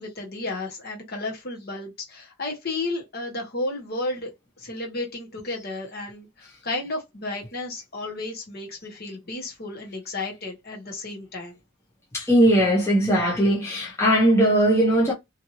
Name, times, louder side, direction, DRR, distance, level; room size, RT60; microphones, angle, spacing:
voice 1, 0.0-4.3 4.6-11.6, left 2 dB, 45° left, 1.0 m, -33 dB
voice 2, 12.1-15.1, right 1 dB, 10° left, 0.7 m, -19 dB
2.7 x 2.5 x 2.9 m
head